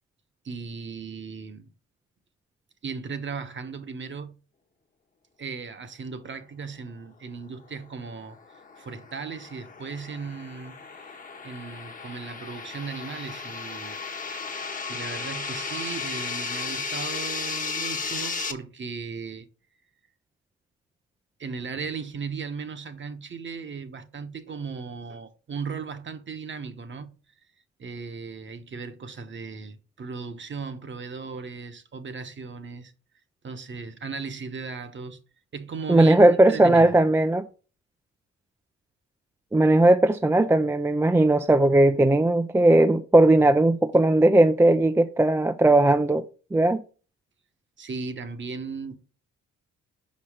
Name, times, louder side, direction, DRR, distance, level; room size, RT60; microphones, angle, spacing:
voice 1, 0.4-1.7 2.8-4.4 5.4-8.4 8.8-11.2 11.4-14.0 14.9-19.5 21.4-27.2 27.8-32.9 33.4-35.2 35.5-36.2 36.5-36.9 47.8-49.0, right 5 dB, 40° right, 1.0 m, -37 dB
sound 1, 8.1-18.5, left 4 dB, 25° left, 1.0 m, -34 dB
voice 2, 35.9-37.5 39.5-46.2 46.5-46.8, right 1 dB, 10° right, 0.3 m, -18 dB
5.5 x 5.4 x 4.9 m
cardioid pair, 90°, 30 cm